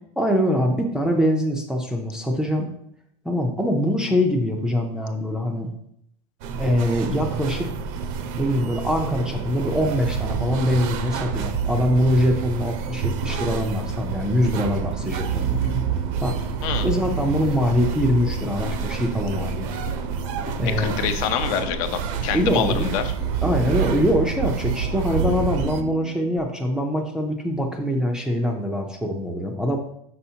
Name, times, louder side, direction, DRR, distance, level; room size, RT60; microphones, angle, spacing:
voice 1, 0.2-2.7 3.2-5.7 6.6-7.7 8.4-15.6 16.2-16.4 16.8-19.7 20.6-20.9 22.3-23.0 23.4-29.8, equal, 5° right, 0 dB, 0.4 m, -23 dB
sound 1, 6.4-25.8, right 7 dB, 55° right, 0.6 m, -28 dB
sound 2, 12.6-26.4, left 6 dB, 85° left, 1.0 m, -40 dB
voice 2, 20.8-23.0, left 8 dB, 60° left, 8 dB, 0.7 m, -26 dB
6.0 x 5.6 x 2.7 m, 0.72 s
supercardioid pair, 160°, 20 cm